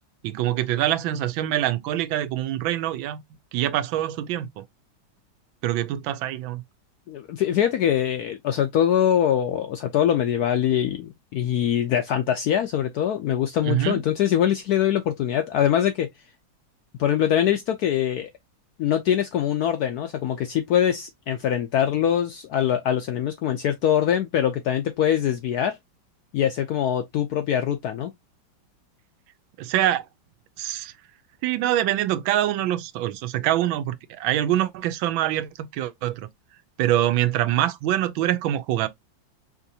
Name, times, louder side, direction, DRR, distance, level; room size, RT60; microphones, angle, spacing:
voice 1, 0.2-3.2 3.5-4.7 5.6-6.6 13.6-14.0 29.6-30.0 30.6-30.9 31.4-36.3 36.8-38.9, right 13 dB, 80° right, 1.3 m, -24 dB
voice 2, 7.1-16.1 17.0-18.3 18.8-25.7 26.3-28.1, left 10 dB, 75° left, 0.9 m, -23 dB
5.1 x 2.7 x 2.7 m
omnidirectional pair, 2.1 m